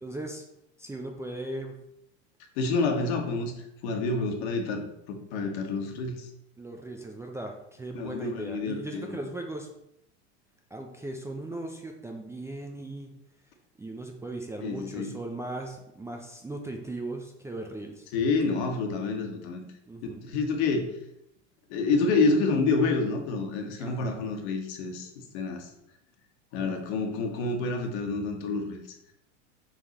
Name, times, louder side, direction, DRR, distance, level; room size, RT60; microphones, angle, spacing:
voice 1, 0.0-0.4 0.8-1.8 6.6-9.7 10.7-13.1 13.8-18.6 19.9-20.3 23.8-24.3 26.6-26.8, right 2 dB, 10° right, 2 dB, 0.5 m, -38 dB
voice 2, 2.6-3.5 3.8-6.3 7.9-9.2 14.6-15.1 18.1-19.6 20.2-20.9 21.7-25.1 25.3-25.7 26.5-28.8, left 3 dB, 60° left, 3 dB, 1.5 m, -28 dB
6.4 x 3.9 x 4.1 m, 0.80 s
supercardioid pair, 120°, 36 cm